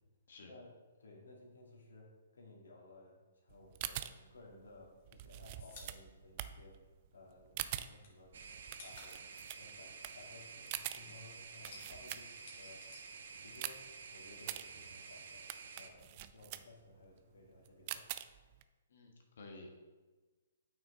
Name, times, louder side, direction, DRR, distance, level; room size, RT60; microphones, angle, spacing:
voice 1, 0.4-0.7 1.0-6.8 7.1-8.3 8.8-9.2 9.5-12.8 13.3-18.1, left 2 dB, 85° left, -3 dB, 2.7 m, -58 dB
sound 1, 3.5-12.6 13.0-18.6, right 13 dB, 40° right, 0.4 m, -45 dB
sound 2, 4.6-7.3 7.6-10.9 11.2-13.8 14.1-15.2, left 4 dB, 50° left, 2.2 m, -58 dB
sound 3, 8.3-15.9, right 5 dB, 70° right, 0.9 m, -51 dB
voice 2, 18.9-19.7, left 3 dB, 70° left, 2 dB, 1.6 m, -53 dB
8.9 x 6.0 x 3.7 m, 1.3 s
hypercardioid pair, 140°, 0 cm